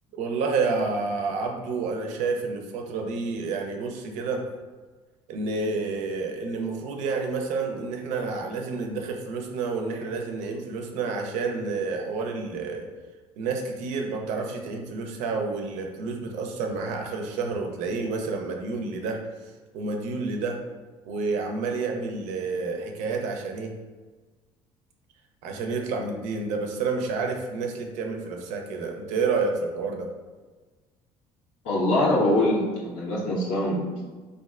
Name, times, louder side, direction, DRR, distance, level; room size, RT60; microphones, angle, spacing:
voice 1, 0.1-4.5 5.3-12.9 13.4-19.2 19.7-20.6 21.1-23.7 25.4-30.1, right 4 dB, 80° right, 3 dB, 0.5 m, -29 dB
voice 2, 31.6-34.0, left 1 dB, 85° left, -6 dB, 0.9 m, -23 dB
3.2 x 2.5 x 2.4 m, 1.3 s
cardioid pair, 115°, 12 cm